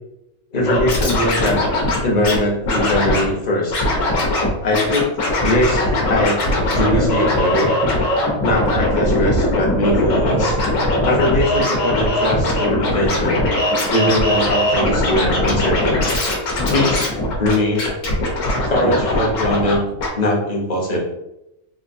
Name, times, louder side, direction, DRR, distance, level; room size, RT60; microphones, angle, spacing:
voice 1, 0.5-1.6 2.0-3.7 4.6-5.1 5.4-6.4 6.7-7.7 8.4-10.6 11.1-13.4 13.9-16.0 16.7-17.9 18.7-19.8 20.1-21.0, left 1 dB, 35° left, -3 dB, 0.8 m, -20 dB
Scratching (performance technique), 0.6-2.4 2.6-3.2 3.7-4.5 4.7-19.7 20.0-20.1, left 1 dB, 75° left, 1.3 m, -20 dB
sound 1, 8.2-18.5, right 1 dB, 85° right, 1.1 m, -34 dB
3.9 x 2.5 x 2.6 m, 0.87 s
omnidirectional pair, 1.4 m